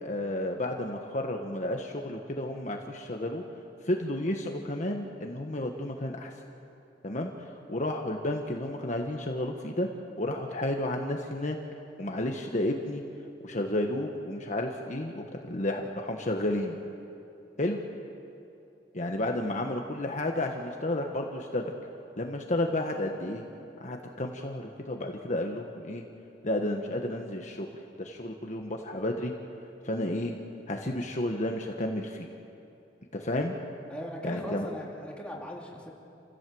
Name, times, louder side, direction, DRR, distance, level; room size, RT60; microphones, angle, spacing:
voice 1, 0.0-3.4 3.8-6.3 7.0-7.3 7.7-9.9 10.2-11.6 12.0-13.0 13.4-16.8 17.6-17.8 18.9-21.7 22.2-23.4 23.8-26.0 26.4-27.7 28.0-29.3 29.8-30.4 30.7-32.3 33.1-33.6 34.2-34.7, left 1 dB, 45° left, 2 dB, 1.4 m, -31 dB
voice 2, 33.9-35.9, left 1 dB, 5° left, -2 dB, 3.2 m, -39 dB
28.5 x 16.0 x 7.8 m, 2.8 s
head